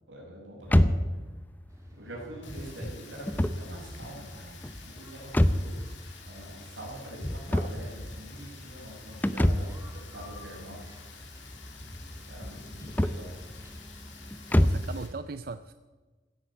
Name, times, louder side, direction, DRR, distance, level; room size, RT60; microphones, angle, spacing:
voice 1, 0.1-0.9 1.9-5.7 6.2-11.4 12.3-13.3, right 1 dB, 85° right, -2 dB, 5.8 m, -44 dB
sound 1, 0.6-15.0, left 1 dB, 10° left, 0.5 m, -29 dB
sound 2, 1.7-14.8, equal, 15° right, 2.5 m, -56 dB
Rain, 2.4-15.1, left 5 dB, 80° left, 3.2 m, -51 dB
voice 2, 14.6-15.7, right 4 dB, 50° right, 12 dB, 0.5 m, -38 dB
16.0 x 10.0 x 8.1 m, 1.3 s
head